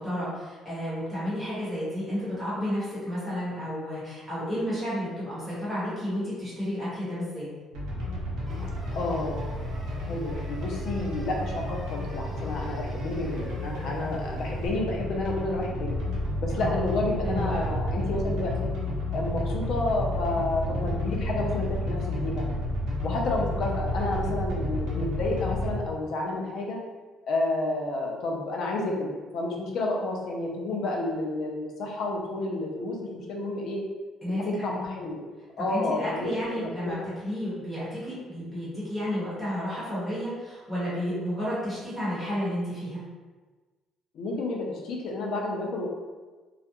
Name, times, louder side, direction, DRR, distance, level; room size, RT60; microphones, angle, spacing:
voice 1, 0.0-7.5 16.6-16.8 17.2-17.7 34.2-34.5 35.6-37.0 37.2-43.0, equal, ahead, -11 dB, 1.1 m, -31 dB
sound 1, 7.7-25.8, left 1 dB, 70° right, 0.7 m, -31 dB
sound 2, 8.5-14.7, right 2 dB, 25° right, 0.5 m, -45 dB
voice 2, 9.0-9.4 10.0-16.0 16.4-18.7 19.1-22.5 23.0-26.8 27.2-33.8 34.4-35.2 35.6-36.9 44.1-45.9, left 2 dB, 55° left, -1 dB, 0.4 m, -30 dB
2.3 x 2.2 x 2.8 m, 1.3 s
cardioid pair, 165°, 0 cm